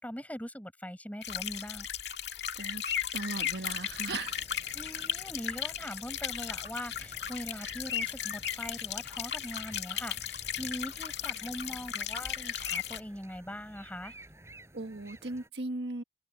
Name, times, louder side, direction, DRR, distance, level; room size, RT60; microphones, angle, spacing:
voice 1, 0.0-1.9 4.7-14.1, equal, 10° left, 7.6 m, -41 dB
Waterflow Ib, 1.2-13.0, left 9 dB, 75° left, 2.0 m, -36 dB
voice 2, 3.1-4.4 14.7-16.0, right 2 dB, 75° right, 1.6 m, -37 dB
sound 1, 3.3-15.5, right 1 dB, 15° right, 7.7 m, -56 dB
open air
head